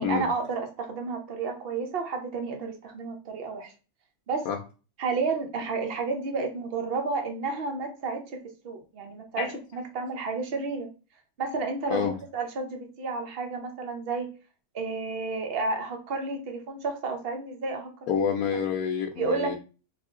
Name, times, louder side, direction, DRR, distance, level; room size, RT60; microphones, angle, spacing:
voice 1, 0.0-3.7 4.3-4.5 5.0-10.9 11.4-14.3 14.7-17.9 19.2-19.6, right 4 dB, 50° right, 4 dB, 0.8 m, -31 dB
voice 2, 18.1-19.6, left 7 dB, 75° left, 1 dB, 1.0 m, -27 dB
3.4 x 2.5 x 3.5 m, 0.33 s
omnidirectional pair, 1.5 m